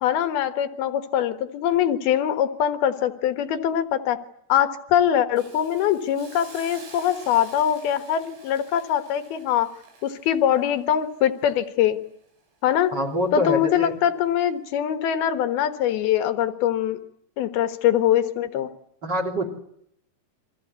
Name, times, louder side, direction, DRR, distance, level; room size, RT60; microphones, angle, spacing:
voice 1, 0.0-4.2 4.5-9.7 10.0-12.0 12.6-12.9 13.3-17.0 17.4-18.7, left 10 dB, 65° left, 9 dB, 2.9 m, -23 dB
Hiss, 5.4-12.4 12.8-13.0, right 3 dB, 75° right, 8.7 m, -49 dB
voice 2, 12.9-13.9 19.0-19.4, equal, 25° right, 8 dB, 3.3 m, -25 dB
29.0 x 23.5 x 8.3 m, 0.73 s
omnidirectional pair, 5.4 m